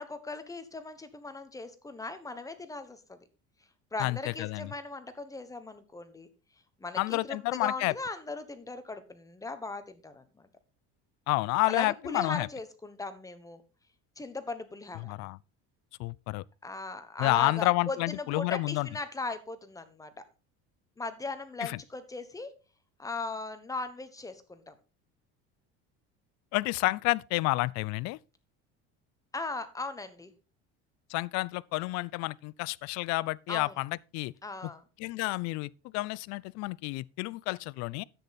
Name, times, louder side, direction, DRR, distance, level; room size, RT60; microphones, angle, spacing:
voice 1, 0.0-3.2 3.9-6.3 6.8-10.5 11.7-13.6 14.2-15.1 16.6-20.1 21.0-22.5 23.0-24.7 29.3-30.3 33.5-33.8 34.4-34.8, left 3 dB, 10° left, 1.1 m, -38 dB
voice 2, 4.0-4.7 7.0-7.9 11.3-12.5 15.0-15.4 16.0-16.4 17.2-18.9 21.6-21.8 26.5-28.2 31.1-34.3 35.0-38.0, left 21 dB, 65° left, 0.5 m, -30 dB
10.0 x 8.5 x 4.1 m
cardioid pair, 145°, 29 cm